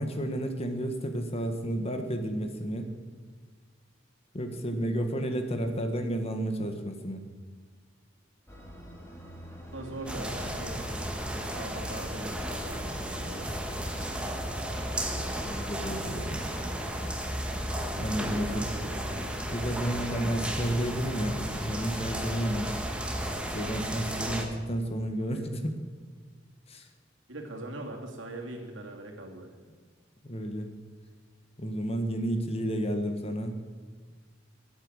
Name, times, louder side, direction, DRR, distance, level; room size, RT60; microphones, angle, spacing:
voice 1, 0.0-2.9 4.3-7.2 15.4-16.5 17.9-18.6 19.5-22.7 23.5-25.7 26.7-26.8 30.2-30.7 31.6-33.6, right 1 dB, 30° left, 5 dB, 1.6 m, -31 dB
sound 1, 8.5-17.1, equal, 15° left, 2.4 m, -47 dB
voice 2, 9.7-10.8 11.4-13.5 18.2-19.4 25.3-25.5 27.3-29.5, right 1 dB, 80° right, 1 dB, 2.8 m, -41 dB
sound 2, 10.1-24.4, equal, 5° right, 1.7 m, -34 dB
22.5 x 8.9 x 6.5 m, 1.5 s
head